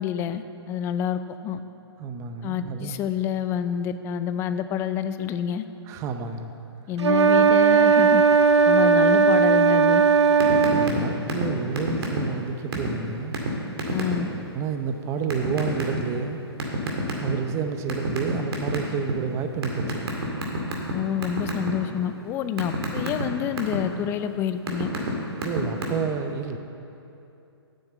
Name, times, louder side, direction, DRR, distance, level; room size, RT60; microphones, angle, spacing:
voice 1, 0.0-1.6 2.4-5.6 6.9-8.2 8.7-10.0 13.9-14.3 20.9-24.9, left 9 dB, 15° left, 11 dB, 0.4 m, -28 dB
voice 2, 2.0-3.0 5.9-6.5 10.7-13.4 14.5-16.4 17.2-20.2 25.4-26.6, right 5 dB, 20° right, 7 dB, 0.7 m, -30 dB
sound 1, 7.0-11.0, right 5 dB, 85° right, 0.4 m, -17 dB
sound 2, 10.4-11.0 11.3-11.5 11.8-12.4 12.7-12.9 13.3-13.5 13.8-14.1 15.3-16.0 16.6-17.5 17.9-19.1 19.6-20.9 21.2-21.7 22.1-23.8 24.4-25.1 25.4-25.8, right 3 dB, 60° right, 2.4 m, -27 dB
9.1 x 7.1 x 8.2 m, 2.8 s
hypercardioid pair, 135°, 14 cm